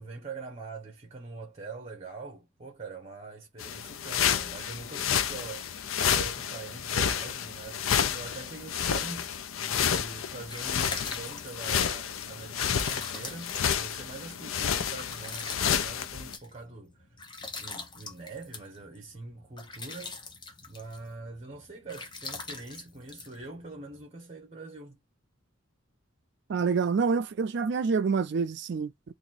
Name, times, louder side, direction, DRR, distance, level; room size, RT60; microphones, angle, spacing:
voice 1, 0.0-5.8 6.1-17.2 17.6-20.2 20.6-25.0, right 3 dB, 30° right, 0.8 m, -44 dB
sound 1, 3.6-16.4, left 8 dB, 80° left, 0.5 m, -30 dB
sound 2, 10.2-24.0, left 3 dB, 20° left, 0.7 m, -44 dB
voice 2, 26.5-29.1, right 5 dB, 55° right, 0.3 m, -27 dB
2.9 x 2.6 x 3.9 m
head